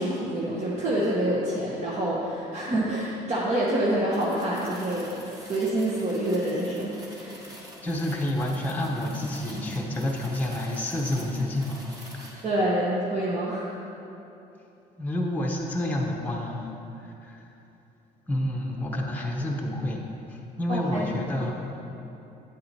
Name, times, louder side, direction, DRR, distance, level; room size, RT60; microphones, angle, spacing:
voice 1, 0.0-5.1 5.5-7.4 12.4-13.8 20.7-21.1 21.4-21.5, right 1 dB, 40° right, -6 dB, 1.0 m, -27 dB
sound 1, 4.1-12.5, equal, 20° right, 1.5 m, -46 dB
voice 2, 7.8-11.9 15.0-16.7 18.3-20.0 20.6-21.5, left 1 dB, 10° left, -1 dB, 0.8 m, -28 dB
8.6 x 7.5 x 2.8 m, 2.9 s
cardioid pair, 110°, 17 cm